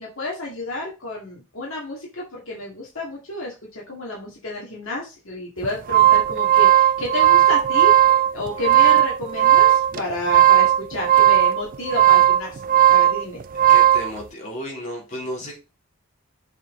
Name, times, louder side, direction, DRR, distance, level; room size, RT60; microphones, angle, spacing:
voice 1, 0.0-7.9 8.3-12.6 12.9-13.4, left 2 dB, 70° left, 2.1 m, -31 dB
sound 1, 5.6-14.1, right 12 dB, 40° right, 0.4 m, -16 dB
voice 2, 13.7-15.6, equal, 35° left, 3.2 m, -33 dB
7.2 x 4.6 x 3.8 m
head